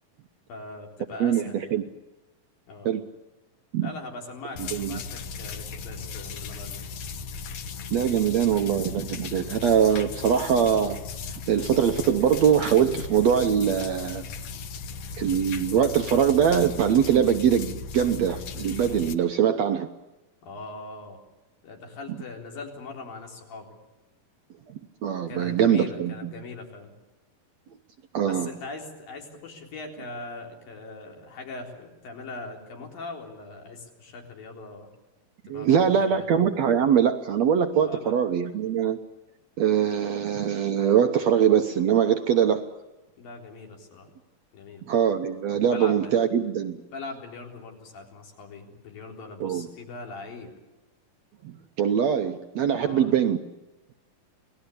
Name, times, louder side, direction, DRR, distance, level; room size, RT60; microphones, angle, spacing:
voice 1, 0.5-1.8 2.7-2.9 3.8-6.8 20.4-21.2 21.6-23.8 25.3-26.9 28.3-34.9 35.5-36.3 37.8-38.2 43.2-44.1 44.5-44.8 45.6-46.2 46.9-50.5 52.8-53.1, left 3 dB, 75° left, 2 dB, 5.7 m, -41 dB
voice 2, 1.2-1.9 2.9-3.0 3.7-3.9 4.7-5.0 7.9-11.0 11.5-14.2 15.2-19.9 25.0-26.3 28.1-28.5 35.5-39.0 39.6-42.7 44.9-46.8 49.4-49.7 51.4-53.4, right 8 dB, 70° right, 7 dB, 1.7 m, -22 dB
sound 1, 4.6-19.2, left 5 dB, 60° left, 2.1 m, -37 dB
28.0 x 18.5 x 8.5 m, 1.1 s
omnidirectional pair, 4.0 m